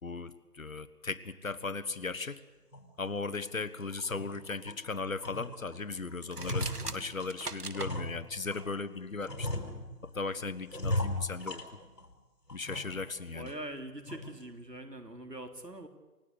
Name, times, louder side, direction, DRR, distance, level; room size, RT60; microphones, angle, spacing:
voice 1, 0.0-2.4 3.0-9.5 10.0-11.8 12.5-13.5, left 4 dB, 55° left, 14 dB, 1.4 m, -37 dB
sound 1, 2.7-2.9 3.4-3.5 3.9-4.8 5.2-5.8 6.1-8.7 9.2-10.2 10.7-12.1 12.5-13.1 13.5-13.6 14.1-14.4, left 1 dB, 90° left, 4.6 m, -37 dB
sound 2, 6.2-7.9, right 3 dB, 70° right, 1.8 m, -40 dB
voice 2, 13.3-15.9, right 1 dB, 90° right, 6 dB, 3.7 m, -43 dB
28.5 x 16.5 x 8.1 m, 1.1 s
figure-of-eight pair, 155°, 48 cm